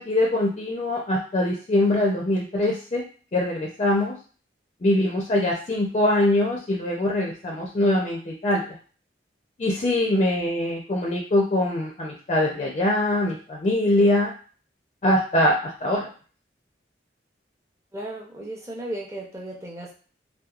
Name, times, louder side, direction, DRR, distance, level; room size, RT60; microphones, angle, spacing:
voice 1, 0.0-3.0 3.3-4.1 4.8-8.7 9.6-14.3 15.0-16.1, left 1 dB, 35° left, -2 dB, 0.4 m, -23 dB
voice 2, 10.2-10.5 17.9-19.9, right 1 dB, 15° right, -2 dB, 0.6 m, -35 dB
2.8 x 2.2 x 2.3 m, 0.40 s
head